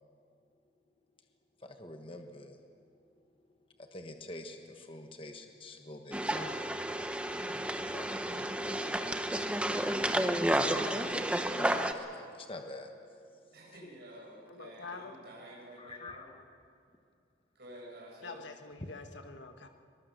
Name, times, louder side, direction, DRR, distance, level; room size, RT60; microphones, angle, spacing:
voice 1, 1.6-2.6 3.4-9.4 9.7-13.8 15.8-16.4, left 1 dB, 30° left, 5 dB, 1.3 m, -48 dB
sound 1, 6.1-11.9, right 1 dB, 5° right, 0.8 m, -31 dB
voice 2, 13.5-16.3 17.5-18.4, right 1 dB, 60° right, -3 dB, 6.7 m, -50 dB
voice 3, 14.5-15.2 18.2-19.7, left 4 dB, 75° left, 6 dB, 1.6 m, -46 dB
22.5 x 21.5 x 6.8 m, 2.4 s
head